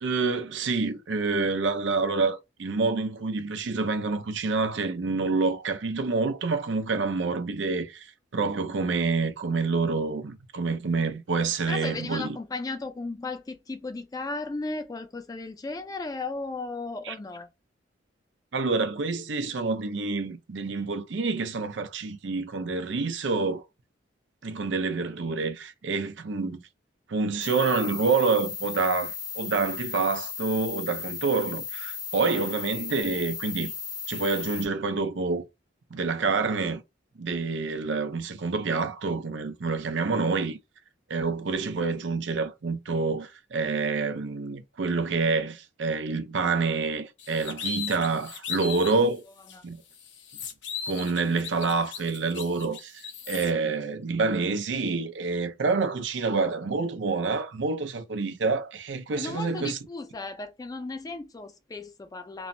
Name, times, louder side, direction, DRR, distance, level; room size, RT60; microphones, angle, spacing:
voice 1, 0.0-12.4 17.1-17.2 18.5-23.6 24.4-26.6 27.1-33.7 34.1-35.5 35.9-36.8 37.2-40.6 41.1-49.2 49.6-49.8 50.9-59.8, right 4 dB, 80° right, 0.6 m, -27 dB
voice 2, 11.7-17.5 48.8-49.0 49.5-49.7 59.1-62.5, left 3 dB, 20° left, 0.3 m, -35 dB
sound 1, 27.4-34.7, left 6 dB, 50° left, 0.8 m, -36 dB
sound 2, 47.2-49.0 49.5-49.6 49.9-53.5, left 7 dB, 85° left, 0.7 m, -37 dB
3.0 x 2.0 x 2.6 m
head